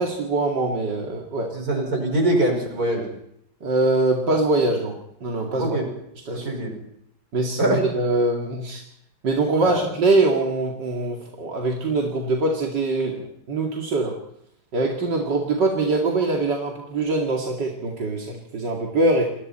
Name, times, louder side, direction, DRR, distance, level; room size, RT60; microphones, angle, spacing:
voice 1, 0.0-1.5 3.6-5.8 6.3-6.5 7.3-8.8 9.2-14.2 14.7-19.2, right 2 dB, 85° right, 0 dB, 3.0 m, -23 dB
voice 2, 1.5-3.1 5.6-5.8 6.3-6.7 7.6-7.8 9.6-9.8, right 1 dB, 60° right, 2 dB, 6.2 m, -23 dB
29.0 x 20.5 x 4.4 m, 0.72 s
omnidirectional pair, 1.8 m